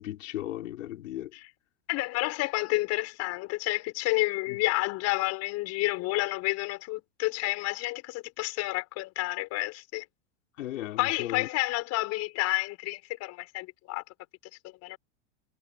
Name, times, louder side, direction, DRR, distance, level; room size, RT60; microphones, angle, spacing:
voice 1, 0.0-1.3 4.5-4.6 10.6-11.5, left 14 dB, 90° left, 6.0 m, -36 dB
voice 2, 1.9-10.1 11.0-14.0 14.6-15.0, left 20 dB, 45° left, 7.3 m, -30 dB
supercardioid pair, 150°, 38 cm